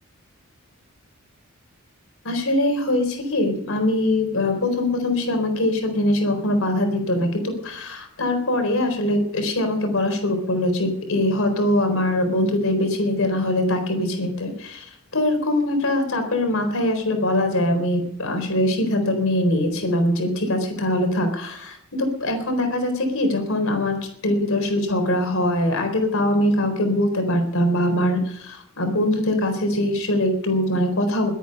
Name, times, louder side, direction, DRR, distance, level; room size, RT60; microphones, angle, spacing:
voice 1, 2.2-24.0 24.2-31.3, left 1 dB, 65° left, 5 dB, 4.2 m, -22 dB
22.0 x 9.2 x 5.4 m, 0.74 s
head